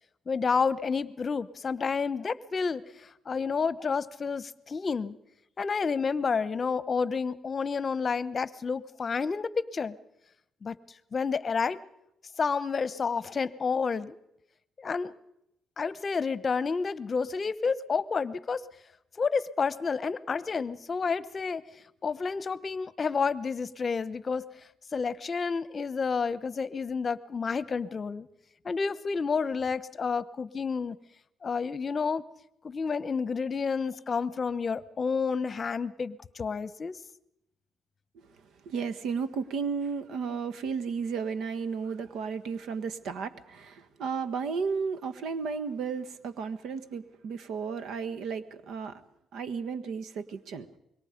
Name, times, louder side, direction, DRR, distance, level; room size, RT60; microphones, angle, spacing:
voice 1, 0.3-5.2 5.6-9.9 10.6-10.8 11.1-11.8 12.4-14.2 14.8-15.1 15.8-18.6 19.2-21.6 22.0-24.5 24.9-28.3 28.6-31.0 31.4-32.2 32.6-37.0, left 5 dB, 40° left, 17 dB, 0.9 m, -30 dB
voice 2, 38.4-49.0 49.3-50.7, right 5 dB, 80° right, 11 dB, 1.5 m, -33 dB
25.5 x 22.5 x 5.2 m, 0.80 s
cardioid pair, 90°, 0 cm